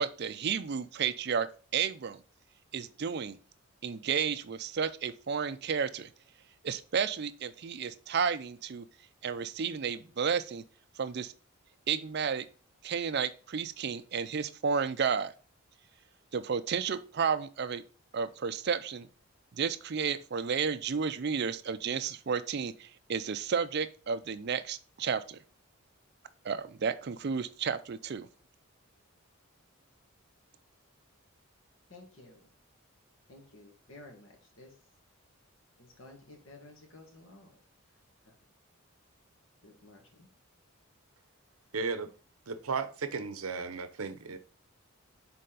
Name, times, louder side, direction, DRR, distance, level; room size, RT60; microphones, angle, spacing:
voice 1, 0.0-2.2 2.7-3.4 3.8-6.1 6.6-8.9 9.2-10.6 11.0-11.3 11.9-12.5 12.8-15.3 16.3-17.8 18.1-19.1 19.5-25.4 26.4-28.3, right 6 dB, 50° right, 0.4 m, -32 dB
voice 2, 31.9-32.5 33.3-34.8 35.8-37.5 38.2-38.3 39.6-40.3, left 2 dB, 65° left, 1.7 m, -53 dB
voice 3, 41.7-42.1 42.5-44.4, right 4 dB, 80° right, 0.7 m, -35 dB
6.7 x 4.2 x 3.8 m
head